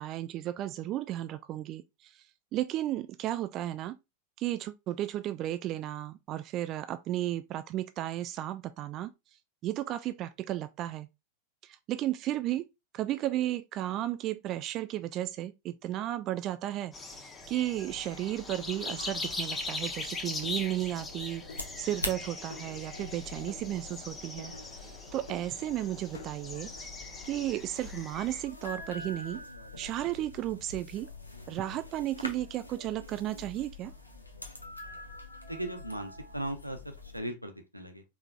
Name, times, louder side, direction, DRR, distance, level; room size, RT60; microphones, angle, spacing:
voice 1, 0.0-2.2 2.5-4.0 4.4-9.1 9.6-11.1 11.6-12.7 12.9-24.5 25.1-26.7 27.2-29.4 29.8-31.1 31.5-33.9, right 13 dB, 35° right, 0.3 m, -34 dB
sound 1, 16.9-28.4, left 3 dB, 15° left, 0.9 m, -41 dB
sound 2, 17.8-37.2, left 2 dB, 85° left, 0.8 m, -45 dB
sound 3, 19.2-21.2 21.5-22.2 22.5-23.2 23.5-24.1 24.4-25.9 26.1-26.4, left 4 dB, 70° left, 1.1 m, -52 dB
voice 2, 35.5-36.8 37.1-38.0, right 1 dB, 90° right, 0.8 m, -37 dB
4.8 x 3.4 x 2.3 m
figure-of-eight pair, 90°, 0 cm